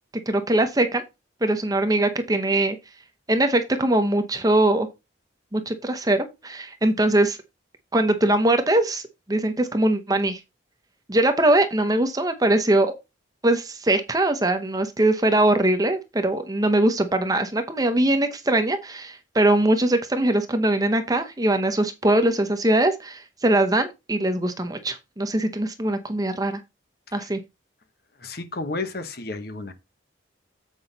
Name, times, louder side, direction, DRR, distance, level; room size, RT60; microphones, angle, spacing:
voice 1, 0.3-1.0 1.4-2.8 3.3-4.9 5.5-7.4 7.9-9.0 9.3-10.4 11.1-12.9 13.4-26.6 27.1-27.4, right 1 dB, 20° right, 0.8 m, -21 dB
voice 2, 28.2-29.7, left 3 dB, 50° left, 1.1 m, -32 dB
7.8 x 5.4 x 3.9 m
head